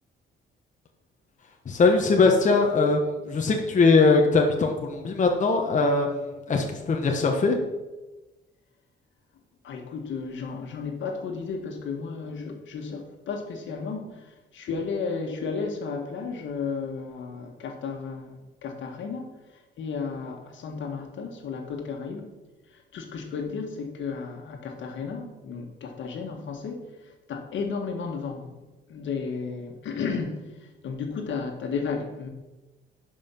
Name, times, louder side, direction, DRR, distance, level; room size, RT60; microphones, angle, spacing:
voice 1, 1.6-7.6, left 3 dB, 40° left, 2 dB, 1.2 m, -21 dB
voice 2, 9.6-19.3 19.8-22.3 22.7-28.6 28.9-30.5 30.8-32.3, left 5 dB, 70° left, 3 dB, 1.8 m, -33 dB
10.5 x 5.6 x 5.9 m, 1.1 s
cardioid pair, 90°, 20 cm